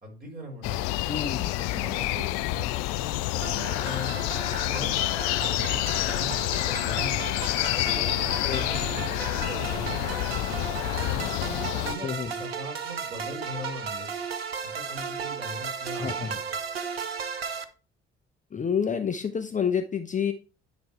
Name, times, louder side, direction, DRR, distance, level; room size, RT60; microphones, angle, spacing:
voice 1, 0.0-1.1 1.7-2.7 3.0-4.2 4.6-4.9 5.3-7.2 7.7-10.6 11.1-14.1 14.6-16.5, left 1 dB, 30° right, -2 dB, 4.3 m, -40 dB
sound 1, 0.6-11.9, left 17 dB, 60° left, 0.5 m, -28 dB
voice 2, 1.1-1.5 8.4-8.7 12.0-12.3 16.0-16.3 18.5-20.3, left 7 dB, 25° left, 7 dB, 0.7 m, -28 dB
sound 2, 3.4-17.6, right 6 dB, 90° right, 0.5 m, -35 dB
10.0 x 3.5 x 4.6 m, 0.35 s
figure-of-eight pair, 45°, 30 cm